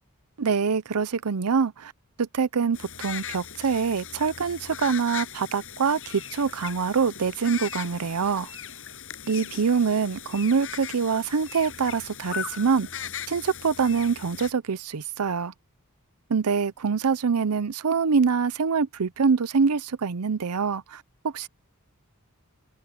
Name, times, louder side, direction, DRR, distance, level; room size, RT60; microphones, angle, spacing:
voice 1, 0.4-1.9 2.2-8.5 9.3-15.5 16.3-21.5, right 5 dB, 90° right, 0.6 m, -25 dB
sound 1, 2.7-14.5, left 8 dB, 65° left, 7.2 m, -39 dB
head